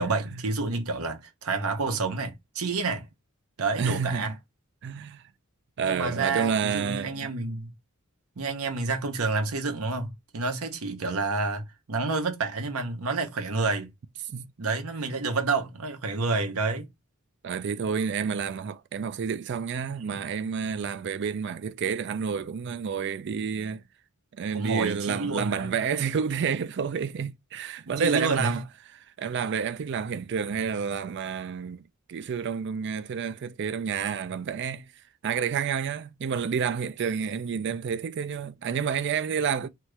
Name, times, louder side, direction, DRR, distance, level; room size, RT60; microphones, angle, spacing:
voice 1, 0.0-3.1 3.6-4.3 5.8-7.7 8.4-13.9 14.6-16.9 20.1-20.2 24.5-25.8 27.9-28.6, right 3 dB, 75° right, 0.8 m, -29 dB
voice 2, 3.8-4.4 4.8-5.2 5.8-7.3 14.3-14.5 17.4-23.8 24.4-28.6 29.2-31.8 32.1-34.8 35.2-39.7, right 6 dB, 50° right, 0.4 m, -29 dB
2.8 x 2.4 x 3.0 m
head